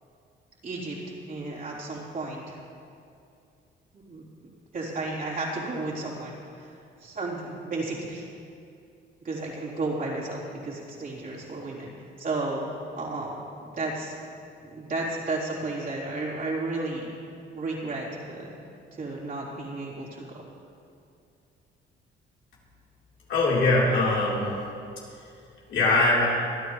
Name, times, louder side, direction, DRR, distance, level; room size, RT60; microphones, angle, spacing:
voice 1, 0.6-1.0 1.3-2.6 3.9-6.7 7.0-8.3 9.2-11.9 12.2-12.6 12.9-14.1 14.6-17.1 17.5-18.6 18.9-20.4, right 2 dB, 45° right, -6 dB, 3.8 m, -33 dB
voice 2, 23.3-24.5 25.7-26.3, left 2 dB, 75° left, -6 dB, 3.9 m, -21 dB
25.5 x 9.6 x 3.2 m, 2.5 s
cardioid pair, 90°, 20 cm